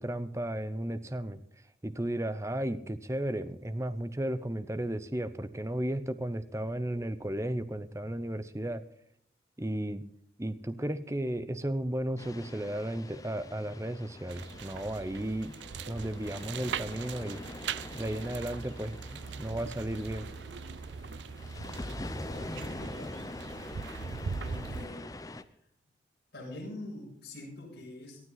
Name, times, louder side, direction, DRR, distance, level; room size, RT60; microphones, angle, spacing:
voice 1, 0.0-1.4 1.8-8.8 9.6-10.0 10.4-15.6 15.9-17.4 17.9-19.0 19.4-20.3, right 1 dB, 15° right, 12 dB, 0.7 m, -34 dB
sound 1, 12.2-25.4, left 1 dB, 20° left, 0.6 m, -44 dB
sound 2, 14.3-24.9, right 6 dB, 75° right, 0.5 m, -41 dB
voice 2, 22.2-23.2 24.4-25.1 25.4-25.5 26.3-28.2, left 1 dB, 55° left, -5 dB, 7.4 m, -44 dB
19.0 x 12.5 x 4.0 m, 0.67 s
head